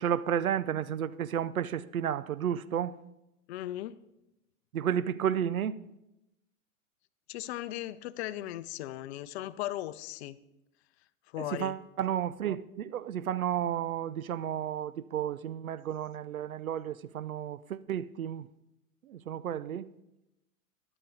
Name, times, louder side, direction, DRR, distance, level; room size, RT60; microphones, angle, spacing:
voice 1, 0.0-2.9 4.7-5.8 11.5-18.5 19.1-19.9, right 9 dB, 80° right, 0.7 m, -32 dB
voice 2, 3.5-4.0 7.3-10.4 11.3-11.8, left 14 dB, 50° left, 0.7 m, -37 dB
13.5 x 11.0 x 4.0 m
hypercardioid pair, 105°, 42 cm